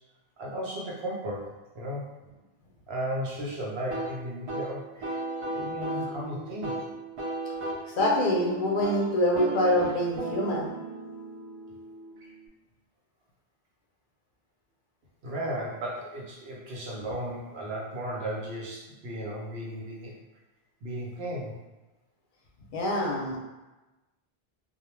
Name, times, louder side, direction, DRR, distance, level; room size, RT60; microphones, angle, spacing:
voice 1, 0.4-1.5 1.7-2.1 2.9-5.2 5.5-6.8 15.2-20.1 20.8-21.5, equal, 75° right, -4 dB, 0.9 m, -35 dB
sound 1, 3.9-12.5, right 2 dB, 55° right, 0.3 m, -36 dB
voice 2, 8.0-10.7 22.7-23.4, left 1 dB, 60° left, -1 dB, 0.6 m, -25 dB
2.3 x 2.1 x 3.0 m, 1.1 s
omnidirectional pair, 1.0 m